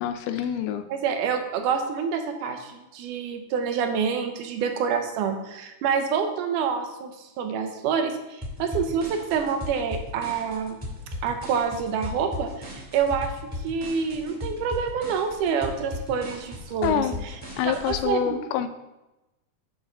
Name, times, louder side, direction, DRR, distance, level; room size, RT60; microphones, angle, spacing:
voice 1, 0.0-0.9 16.8-17.2 17.6-18.7, left 9 dB, 90° left, 9 dB, 2.2 m, -26 dB
voice 2, 0.9-10.8 11.2-13.3 13.6-17.1 17.9-18.2, right 6 dB, 80° right, 6 dB, 2.2 m, -27 dB
sound 1, 8.4-18.0, left 2 dB, 10° right, 1.5 m, -36 dB
8.0 x 4.1 x 5.0 m, 0.99 s
omnidirectional pair, 3.7 m